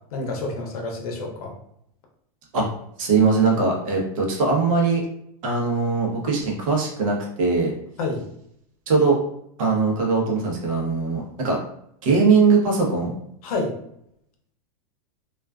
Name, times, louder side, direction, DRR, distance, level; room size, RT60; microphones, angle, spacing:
voice 1, 0.0-1.5 8.0-8.3 13.4-13.8, left 3 dB, 70° left, 1 dB, 0.7 m, -29 dB
voice 2, 3.0-5.0 5.4-7.7 8.9-9.2 9.6-11.6 12.0-13.1, right 4 dB, 60° right, -1 dB, 0.8 m, -20 dB
2.4 x 2.2 x 2.3 m, 0.74 s
supercardioid pair, 175°, 20 cm